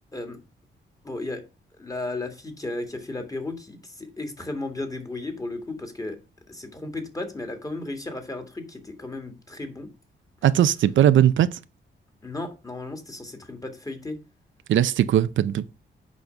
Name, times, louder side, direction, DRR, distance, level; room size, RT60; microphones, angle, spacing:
voice 1, 1.0-1.4 1.8-6.2 6.5-9.9 12.2-14.2, left 2 dB, 20° left, 1.9 m, -34 dB
voice 2, 10.4-11.6 14.7-15.8, right 11 dB, 85° right, 0.5 m, -19 dB
8.3 x 5.2 x 5.8 m
wide cardioid pair, 120°, 19 cm